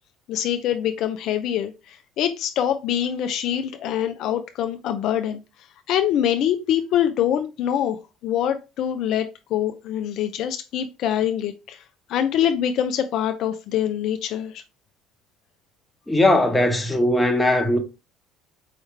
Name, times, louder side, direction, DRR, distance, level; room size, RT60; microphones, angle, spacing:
voice 1, 0.3-5.4 5.9-8.0 8.2-11.8 12.1-14.6, left 10 dB, 65° left, 0.5 m, -24 dB
voice 2, 16.1-17.8, left 1 dB, 10° left, 1.1 m, -19 dB
4.7 x 3.1 x 3.2 m
supercardioid pair, 90°, 0 cm